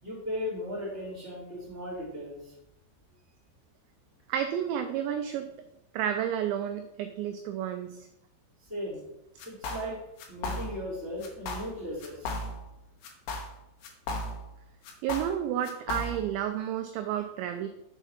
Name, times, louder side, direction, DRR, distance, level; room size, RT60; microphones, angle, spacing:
voice 1, 0.0-2.5 8.7-9.0 9.4-10.0 10.3-12.4, left 1 dB, 5° right, -7 dB, 2.0 m, -37 dB
voice 2, 4.3-5.5 5.9-8.0 15.0-17.7, right 10 dB, 85° right, 7 dB, 2.6 m, -31 dB
sound 1, 9.4-9.9 10.2-10.9 11.2-11.7 12.0-12.7 13.0-14.6 14.8-16.4, left 2 dB, 70° left, 2.7 m, -36 dB
7.0 x 4.6 x 5.8 m, 0.84 s
omnidirectional pair, 5.6 m